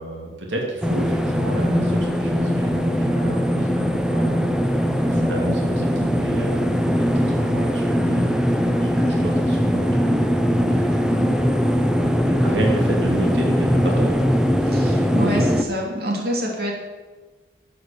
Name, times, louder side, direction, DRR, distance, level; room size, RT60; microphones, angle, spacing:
voice 1, 0.0-4.5 5.0-10.3 10.6-14.3, right 1 dB, 85° right, -1 dB, 2.6 m, -31 dB
sound 1, 0.8-15.6, equal, 5° right, 0.7 m, -20 dB
voice 2, 14.6-16.7, equal, 55° right, -1 dB, 2.9 m, -26 dB
12.5 x 8.6 x 7.1 m, 1.3 s
head